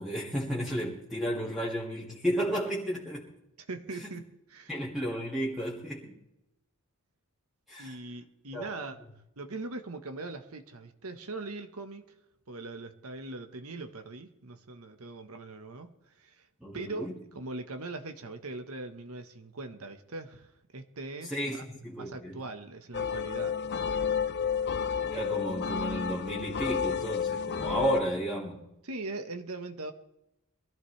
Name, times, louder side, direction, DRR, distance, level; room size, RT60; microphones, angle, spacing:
voice 1, 0.0-3.3 4.0-4.1 4.7-6.2 7.7-8.0 8.5-8.7 16.6-17.1 21.2-22.4 25.0-28.6, right 1 dB, ahead, -6 dB, 2.0 m, -33 dB
voice 2, 3.7-4.7 7.8-9.0 9.4-12.1 12.5-16.5 16.7-17.1 17.3-21.6 22.0-23.6 28.8-29.9, right 2 dB, 80° right, 8 dB, 1.2 m, -41 dB
sound 1, 22.9-28.0, left 7 dB, 50° left, 0.8 m, -31 dB
23.0 x 15.0 x 3.3 m, 0.87 s
head